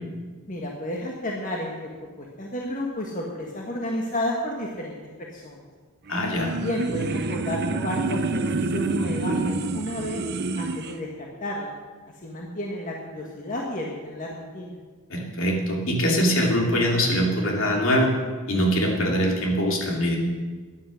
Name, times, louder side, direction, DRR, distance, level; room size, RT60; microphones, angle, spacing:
voice 1, 0.5-1.9 2.2-5.7 6.4-10.2 10.5-11.7 12.2-14.7, left 1 dB, 40° left, -1 dB, 1.5 m, -31 dB
voice 2, 6.1-6.5 15.1-18.1 18.5-20.2, equal, 65° left, 0 dB, 2.8 m, -23 dB
sound 1, 6.1-11.0, right 3 dB, 50° right, 0.7 m, -28 dB
13.5 x 10.5 x 6.3 m, 1.4 s
head